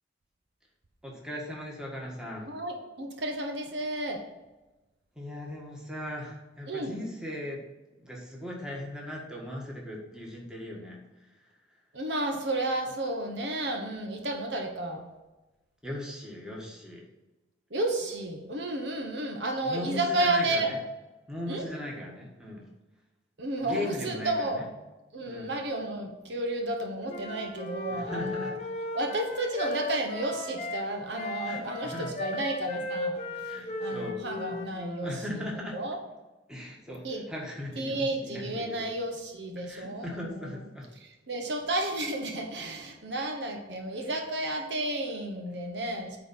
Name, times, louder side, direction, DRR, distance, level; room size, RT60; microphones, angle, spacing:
voice 1, 1.0-2.5 5.2-7.6 8.0-11.0 15.8-17.1 19.6-20.8 21.3-22.6 23.6-24.7 25.3-25.5 27.9-28.5 31.4-32.1 33.4-34.2 35.0-35.8 36.5-38.9 39.5-40.9, left 1 dB, 5° right, -2 dB, 1.6 m, -38 dB
voice 2, 2.5-4.2 6.7-7.0 11.9-15.0 17.7-20.7 21.5-21.6 23.4-24.6 25.1-28.5 28.9-33.2 33.8-36.0 37.0-37.2 37.8-40.6 41.0-46.2, right 1 dB, 65° right, 3 dB, 1.1 m, -32 dB
Wind instrument woodwind instrument, 27.1-30.9 31.1-35.2, left 2 dB, 35° left, 0.9 m, -36 dB
9.1 x 3.9 x 5.6 m, 1.1 s
head